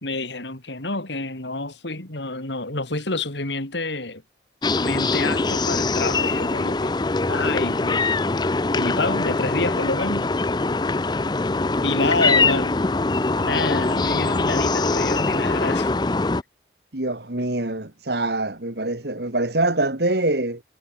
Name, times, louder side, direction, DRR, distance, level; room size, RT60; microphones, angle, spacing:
voice 1, 0.0-4.2 4.8-6.9 7.3-8.2 8.7-10.3 11.8-12.8 13.4-15.9, left 3 dB, 70° left, 3.5 m, -28 dB
sound 1, 4.6-16.4, left 3 dB, 20° left, 0.5 m, -22 dB
voice 2, 16.9-20.6, right 2 dB, 60° right, 2.1 m, -24 dB
head